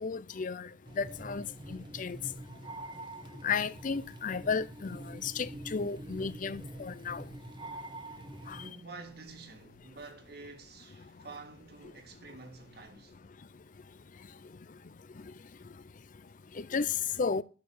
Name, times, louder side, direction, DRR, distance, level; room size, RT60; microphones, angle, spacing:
voice 1, 0.0-0.7 1.0-1.5 1.7-2.2 3.4-7.2 8.5-8.6 16.6-16.9 17.2-17.4, left 5 dB, 45° left, 0.5 m, -33 dB
sound 1, 0.9-8.7, right 1 dB, 25° right, 1.2 m, -45 dB
voice 2, 8.4-13.2, right 3 dB, 65° right, 1.7 m, -49 dB
12.5 x 4.6 x 8.5 m
head